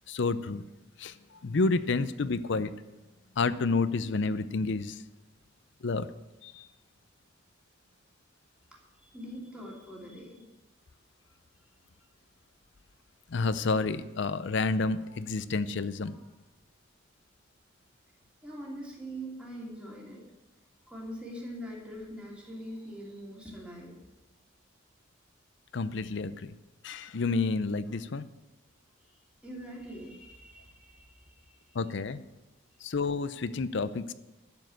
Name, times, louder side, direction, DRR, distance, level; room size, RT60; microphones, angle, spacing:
voice 1, 0.1-0.6 1.0-2.7 3.4-5.0 5.8-6.1 6.4-6.7 13.3-16.2 25.7-26.5 26.8-28.3 31.7-32.2 32.8-34.1, left 3 dB, 60° left, 13 dB, 0.5 m, -30 dB
voice 2, 8.7-10.4 16.0-16.3 18.4-20.2 20.9-24.0 29.0-31.8, equal, 5° right, -4 dB, 2.6 m, -43 dB
12.0 x 7.3 x 7.6 m, 1.0 s
head